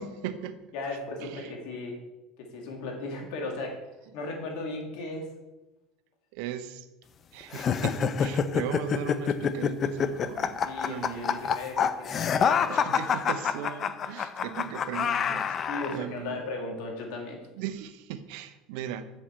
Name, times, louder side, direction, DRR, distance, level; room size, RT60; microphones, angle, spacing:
voice 1, 0.0-0.6 1.2-1.5 6.3-6.9 7.3-11.6 12.7-15.6 15.9-16.4 17.6-19.0, right 10 dB, 70° right, 10 dB, 0.7 m, -38 dB
voice 2, 0.7-2.0 2.5-3.8 4.1-5.3 10.7-12.7 15.7-17.4, left 2 dB, 70° left, 2 dB, 1.9 m, -36 dB
sound 1, 7.5-16.0, left 7 dB, 40° left, 0.5 m, -27 dB
8.5 x 5.4 x 4.2 m, 1.0 s
supercardioid pair, 95°, 0 cm